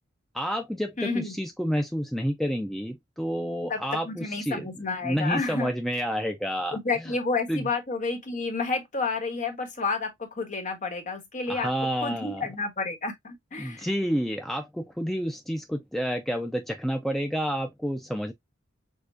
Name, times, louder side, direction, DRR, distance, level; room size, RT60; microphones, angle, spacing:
voice 1, 0.3-4.7 5.0-7.1 7.5-7.7 11.5-12.5 13.6-18.3, equal, ahead, 0.4 m, -29 dB
voice 2, 1.0-1.3 3.7-5.7 6.7-11.7 12.0-13.9, left 3 dB, 40° left, 1.3 m, -30 dB
6.5 x 2.3 x 2.6 m
head